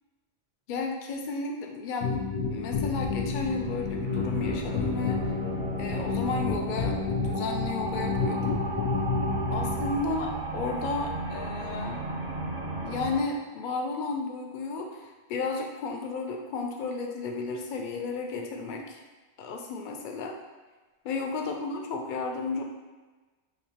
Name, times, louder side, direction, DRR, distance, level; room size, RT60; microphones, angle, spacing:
voice 1, 0.7-2.2 2.5-5.2 5.8-8.6 9.5-12.0 12.8-19.0 19.4-20.3 21.0-22.6, left 4 dB, 55° left, 2 dB, 0.6 m, -33 dB
sound 1, 2.0-10.0, left 4 dB, 85° left, 0.9 m, -30 dB
sound 2, 2.5-13.2, right 3 dB, 50° right, 0.6 m, -36 dB
5.9 x 2.7 x 2.8 m, 1.3 s
omnidirectional pair, 1.2 m